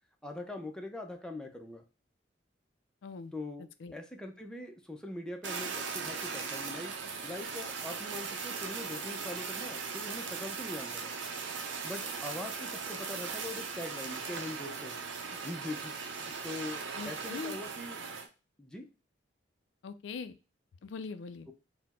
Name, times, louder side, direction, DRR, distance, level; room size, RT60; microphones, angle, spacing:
voice 1, 0.2-1.8 3.3-6.9 7.2-11.2 11.8-15.9 16.3-18.0 18.6-18.9, left 1 dB, 5° left, 3 dB, 0.5 m, -42 dB
voice 2, 3.0-3.3 3.6-3.9 17.0-17.6 19.8-20.4 20.8-21.5, left 5 dB, 75° left, 11 dB, 0.4 m, -42 dB
Fire, 5.4-18.3, right 5 dB, 80° right, 0.6 m, -39 dB
4.1 x 2.1 x 4.2 m, 0.32 s
head